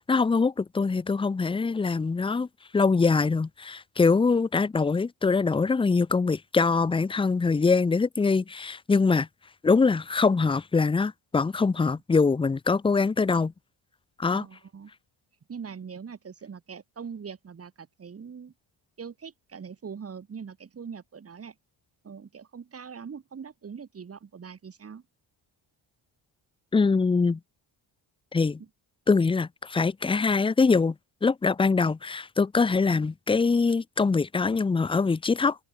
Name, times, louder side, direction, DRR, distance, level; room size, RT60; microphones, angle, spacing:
voice 1, 0.1-2.5 2.7-9.3 9.6-13.5 14.2-14.5 26.7-27.4 28.3-28.6 29.1-30.9 31.2-35.6, left 4 dB, 10° left, 0.4 m, -23 dB
voice 2, 14.3-14.9 15.5-18.5 19.0-21.5 22.0-25.0 28.6-28.7, right 6 dB, 30° right, 1.5 m, -42 dB
open air
cardioid pair, 125°, 48 cm